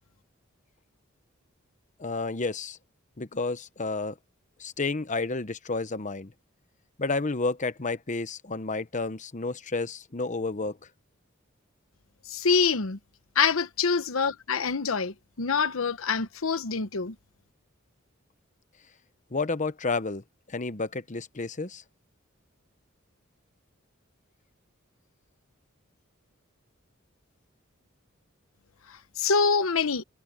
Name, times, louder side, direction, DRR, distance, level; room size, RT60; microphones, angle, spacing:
voice 1, 2.0-2.8 3.2-4.2 4.6-6.3 7.0-10.8 19.3-21.8, left 3 dB, 35° left, 1.0 m, -31 dB
voice 2, 12.3-13.0 13.3-17.1 29.2-30.0, left 5 dB, 85° left, 1.0 m, -25 dB
head